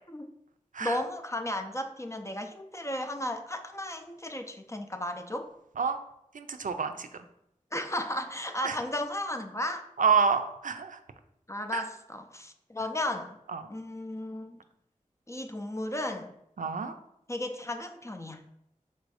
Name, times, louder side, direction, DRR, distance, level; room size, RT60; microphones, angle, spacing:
voice 1, 0.8-5.5 7.7-9.9 11.5-13.4 13.7-14.6 15.3-16.3 17.3-18.4, left 1 dB, 20° left, 6 dB, 0.4 m, -34 dB
voice 2, 6.3-7.1 8.6-8.8 10.0-11.0 11.7-11.8 13.5-13.6 16.6-16.9, right 6 dB, 75° right, 8 dB, 0.4 m, -28 dB
4.1 x 2.6 x 4.8 m, 0.80 s
wide cardioid pair, 55°, 14 cm